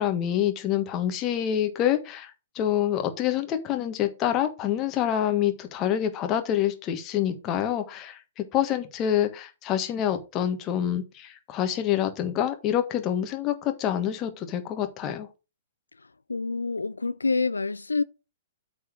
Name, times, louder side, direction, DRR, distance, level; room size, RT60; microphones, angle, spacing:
voice 1, 0.0-15.3, left 10 dB, 30° left, 1.5 m, -27 dB
voice 2, 16.3-18.0, left 4 dB, 80° left, 0.5 m, -27 dB
8.3 x 4.3 x 6.4 m
figure-of-eight pair, 110°, 0 cm